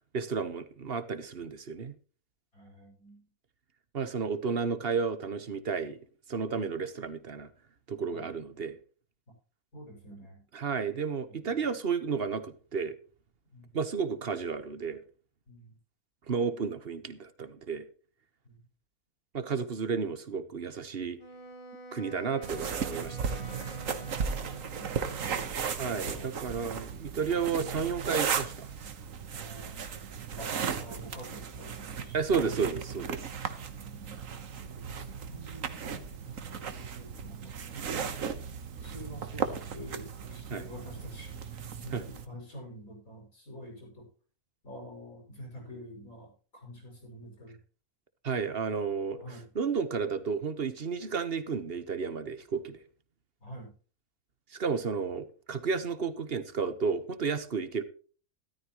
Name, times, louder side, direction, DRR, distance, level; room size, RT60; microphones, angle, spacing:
voice 1, 0.1-1.9 3.9-6.0 6.3-7.5 7.9-8.8 10.5-12.9 13.7-15.0 16.3-17.9 19.3-21.2 21.9-23.3 25.8-28.7 32.1-33.3 40.5-40.6 41.9-42.0 48.2-49.2 49.5-52.8 54.5-57.8, right 5 dB, 40° right, 1.3 m, -32 dB
voice 2, 2.5-3.3 6.5-6.7 8.1-8.3 9.3-9.4 9.7-10.4 11.3-11.7 13.5-13.8 15.5-15.8 18.4-18.6 23.8-24.5 26.0-26.3 29.3-30.1 30.4-32.4 33.7-34.3 34.9-38.2 38.7-44.1 44.6-47.6 48.4-48.7 49.2-49.5 53.4-53.7, equal, 60° left, 7.0 m, -48 dB
Wind instrument woodwind instrument, 21.2-25.3, equal, 35° left, 2.1 m, -48 dB
sound 1, 22.4-42.3, right 6 dB, 60° right, 1.5 m, -36 dB
13.5 x 13.0 x 3.0 m
omnidirectional pair, 1.6 m